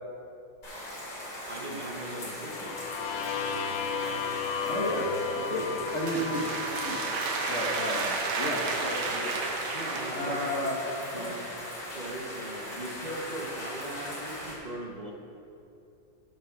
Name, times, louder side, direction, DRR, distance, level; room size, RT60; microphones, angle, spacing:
sound 1, 0.6-14.5, left 1 dB, 65° left, 3.2 m, -39 dB
voice 1, 1.5-2.8 5.5-5.6 9.7-10.4 11.1-11.4 11.9-15.1, right 1 dB, 45° right, 0 dB, 0.5 m, -39 dB
sound 2, 2.3-8.1, left 6 dB, 80° left, 1.5 m, -35 dB
voice 2, 4.6-5.7 5.9-6.5 6.8-7.0 7.5-9.3 10.1-10.8 11.1-11.4, left 1 dB, 40° left, -2 dB, 1.7 m, -32 dB
sound 3, 5.6-10.7, right 4 dB, 90° right, 1.7 m, -33 dB
7.9 x 7.5 x 6.0 m, 2.8 s
omnidirectional pair, 2.1 m